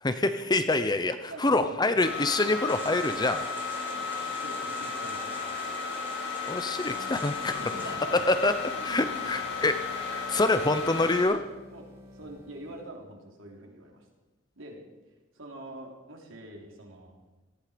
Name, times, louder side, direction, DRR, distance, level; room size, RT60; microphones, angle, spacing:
voice 1, 0.0-3.8 6.5-7.6 8.3-8.5 8.8-11.4, left 2 dB, 20° left, 10 dB, 0.6 m, -26 dB
voice 2, 1.3-1.7 4.3-5.8 7.4-8.2 8.7-9.7 10.6-11.1 11.7-14.1 14.6-14.8 15.3-17.2, right 1 dB, 80° right, 1 dB, 3.5 m, -45 dB
sound 1, 2.0-11.2, left 5 dB, 55° left, 6.1 m, -34 dB
sound 2, 2.7-7.9, right 1 dB, 10° right, 2.2 m, -47 dB
sound 3, 6.7-13.0, left 1 dB, 50° right, 3.7 m, -51 dB
18.0 x 14.5 x 5.1 m, 1.1 s
head